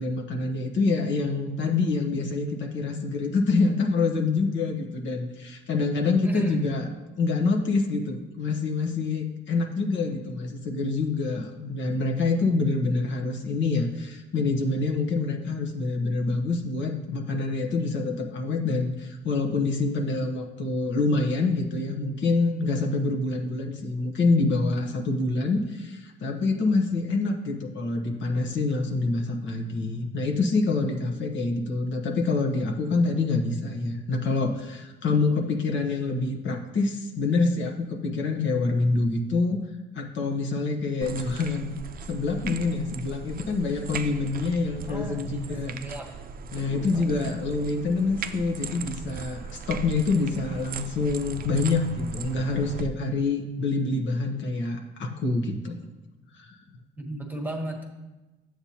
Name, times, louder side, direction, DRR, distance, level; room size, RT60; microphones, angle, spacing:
voice 1, 0.0-6.9 7.2-39.6 39.9-41.8 42.1-45.7 46.5-55.8 56.3-56.6, left 3 dB, 70° left, 1 dB, 1.1 m, -26 dB
voice 2, 6.2-6.7 44.9-46.1 46.9-47.1 57.0-57.8, right 1 dB, 10° right, 1 dB, 1.3 m, -34 dB
sound 1, 41.0-52.8, right 5 dB, 50° right, 0.5 m, -38 dB
9.8 x 7.8 x 2.9 m, 1.1 s
cardioid pair, 90°, 20 cm